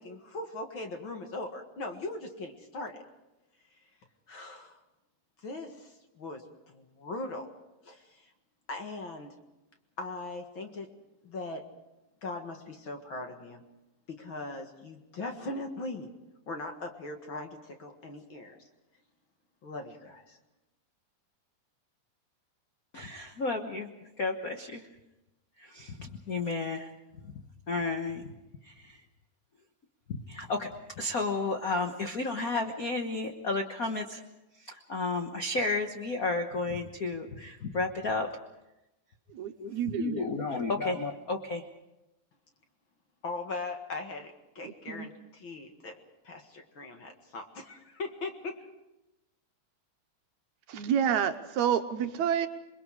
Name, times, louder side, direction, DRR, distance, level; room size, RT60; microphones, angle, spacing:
voice 1, 0.0-3.0 4.3-4.8 5.4-7.5 7.8-8.3 8.7-9.4 10.0-10.9 11.2-11.6 12.2-13.6 14.1-16.1 16.5-18.7 19.6-20.4 43.2-48.7, left 2 dB, 45° left, 4 dB, 2.2 m, -40 dB
voice 2, 22.9-23.9 24.2-24.8 25.6-26.9 27.7-28.3 28.6-29.0 30.1-30.7 31.0-34.2 34.6-38.3 39.6-41.6, left 3 dB, 60° left, 4 dB, 0.9 m, -32 dB
voice 3, 39.4-40.2 44.9-45.1 50.7-52.5, right 8 dB, 75° right, 8 dB, 2.2 m, -29 dB
28.0 x 22.0 x 4.8 m, 0.96 s
omnidirectional pair, 3.5 m